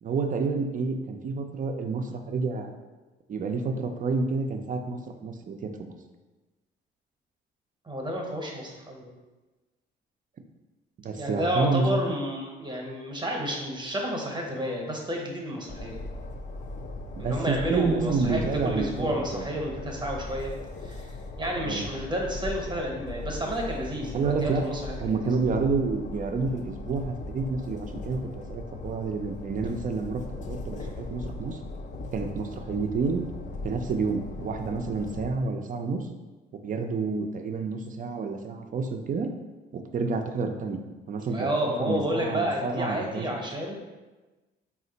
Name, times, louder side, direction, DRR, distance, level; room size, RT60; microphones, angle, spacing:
voice 1, 0.0-2.7 3.3-5.9 11.0-12.1 17.2-19.5 21.6-21.8 24.1-24.7 25.0-30.2 30.5-31.6 32.1-33.2 33.6-36.1 36.6-39.3 39.7-40.8 41.1-41.5 41.8-43.3, right 4 dB, 40° right, 5 dB, 0.5 m, -29 dB
voice 2, 7.9-9.1 11.1-16.0 17.2-20.5 20.8-25.3 30.8-30.9 41.3-43.7, equal, 20° right, 0 dB, 0.9 m, -31 dB
Train, 15.7-35.3, left 2 dB, 40° left, 0.4 m, -38 dB
4.2 x 2.4 x 3.9 m, 1.2 s
cardioid pair, 90°, 20 cm